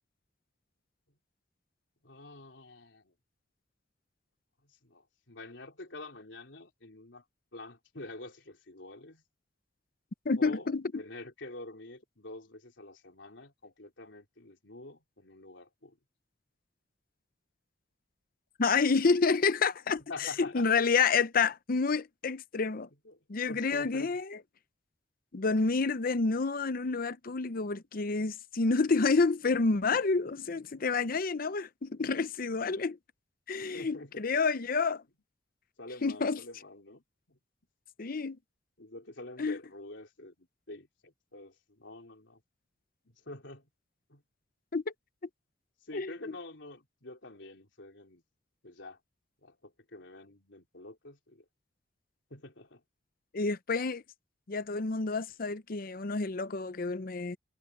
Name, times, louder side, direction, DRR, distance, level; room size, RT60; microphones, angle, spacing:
voice 1, 2.0-3.1 4.8-7.2 7.5-9.2 10.4-16.0 20.1-20.7 23.0-23.2 23.5-24.1 33.7-34.2 35.8-37.0 37.3-37.4 38.8-42.4 43.2-43.7 44.1-44.2 45.8-48.2 48.6-49.0 49.4-51.4 52.3-52.8, left 2 dB, 80° left, 3.7 m, -47 dB
voice 2, 10.3-11.0 18.6-22.9 23.3-24.4 25.3-33.0 33.5-35.0 36.0-36.4 38.0-38.4 39.4-39.6 44.7-44.9 45.9-46.3 53.3-54.0 54.5-57.4, left 4 dB, 50° left, 0.7 m, -29 dB
head